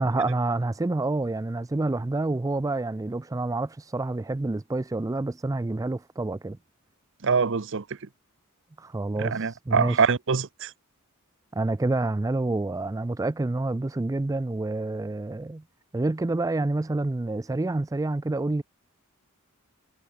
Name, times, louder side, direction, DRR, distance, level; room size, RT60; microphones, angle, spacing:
voice 1, 0.0-6.6 8.8-10.0 11.5-15.6 15.9-18.6, right 2 dB, 15° right, 0.3 m, -28 dB
voice 2, 7.2-7.8 9.2-10.7, right 5 dB, 60° right, 0.8 m, -24 dB
head